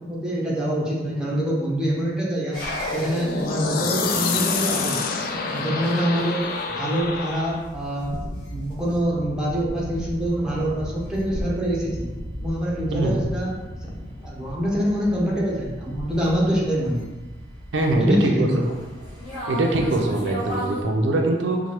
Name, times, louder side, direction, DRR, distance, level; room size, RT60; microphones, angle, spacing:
voice 1, 0.0-2.6 2.9-5.0 5.5-8.1 8.5-12.1 12.4-13.6 14.2-17.1 18.0-18.7, equal, 5° right, -6 dB, 0.7 m, -25 dB
sound 1, 2.5-20.8, equal, 30° left, 1.5 m, -36 dB
sound 2, 2.6-7.7, left 4 dB, 50° left, 0.3 m, -27 dB
voice 2, 17.7-18.5 19.5-21.6, right 2 dB, 85° right, 1 dB, 0.5 m, -22 dB
4.5 x 2.2 x 3.0 m, 1.2 s
head